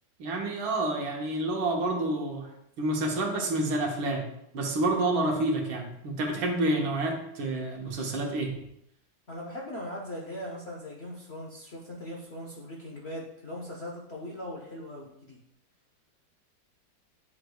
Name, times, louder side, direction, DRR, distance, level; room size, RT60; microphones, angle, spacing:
voice 1, 0.2-2.5 2.8-4.2 4.5-8.5, right 2 dB, 80° right, 1 dB, 1.8 m, -28 dB
voice 2, 9.3-15.4, left 1 dB, 50° left, -2 dB, 0.8 m, -40 dB
9.1 x 4.8 x 2.3 m, 0.76 s
omnidirectional pair, 2.1 m